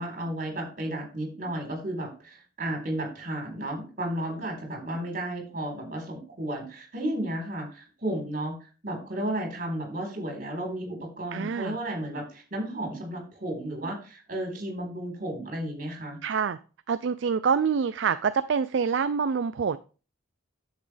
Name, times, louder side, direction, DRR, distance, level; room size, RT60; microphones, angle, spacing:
voice 1, 0.0-8.5 8.8-16.2, right 1 dB, 40° right, 1 dB, 4.1 m, -33 dB
voice 2, 11.3-11.8 16.2-16.6 16.9-19.8, right 6 dB, 60° right, 13 dB, 0.4 m, -26 dB
10.5 x 7.4 x 3.4 m, 0.35 s
head